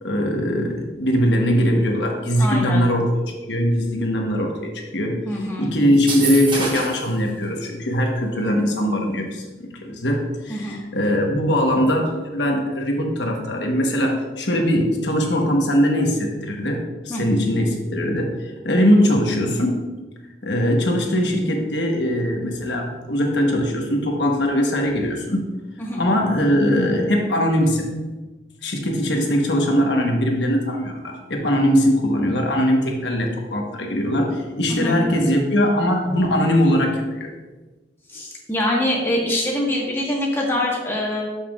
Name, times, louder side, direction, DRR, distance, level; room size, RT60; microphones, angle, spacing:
voice 1, 0.0-19.8 20.4-25.4 26.0-27.9 28.6-37.3, equal, 85° left, 1 dB, 1.2 m, -21 dB
voice 2, 2.4-2.8 5.2-5.7 10.5-10.8 17.1-17.2 25.8-26.0 34.7-35.0 38.1-41.2, left 1 dB, 15° left, -3 dB, 1.5 m, -24 dB
sound 1, 5.9-7.1, right 3 dB, 30° right, 1.2 m, -26 dB
12.5 x 5.8 x 2.4 m, 1.2 s
head